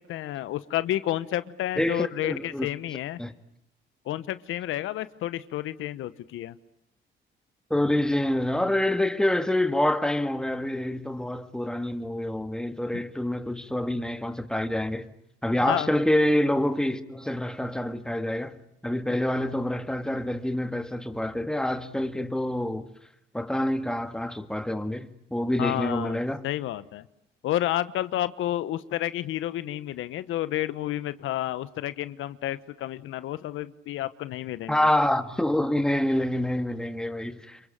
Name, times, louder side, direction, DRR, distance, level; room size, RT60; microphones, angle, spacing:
voice 1, 0.1-3.2 4.0-6.5 12.9-13.0 15.7-15.9 25.6-27.0 27.4-34.9, left 13 dB, 85° left, 1.1 m, -30 dB
voice 2, 1.8-2.7 3.2-3.3 7.7-15.1 15.4-18.6 18.8-22.9 23.3-26.4 34.7-37.6, left 1 dB, 5° left, 2.0 m, -27 dB
28.0 x 24.0 x 8.9 m
cardioid pair, 90°, 20 cm